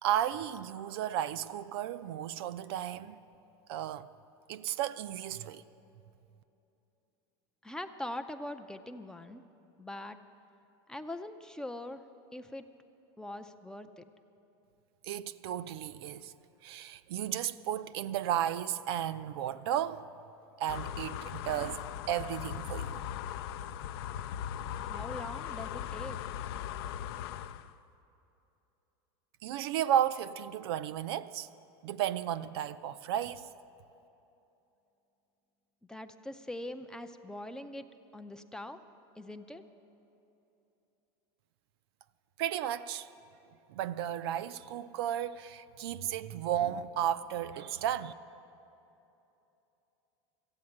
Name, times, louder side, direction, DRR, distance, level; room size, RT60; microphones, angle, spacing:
voice 1, 0.0-3.2 3.7-4.1 4.5-5.6 15.0-16.3 16.6-20.1 20.6-23.0 29.4-31.5 31.8-33.5 42.4-43.1 43.7-48.1, right 11 dB, 75° right, 0.5 m, -34 dB
voice 2, 7.6-9.4 9.8-10.2 10.9-12.0 12.3-12.7 13.2-14.0 24.8-26.2 35.9-37.9 38.1-38.8 39.2-39.6, left 1 dB, 5° left, 0.4 m, -42 dB
sound 1, 20.7-27.7, left 10 dB, 70° left, 0.4 m, -39 dB
14.5 x 8.6 x 8.6 m
supercardioid pair, 145°, 13 cm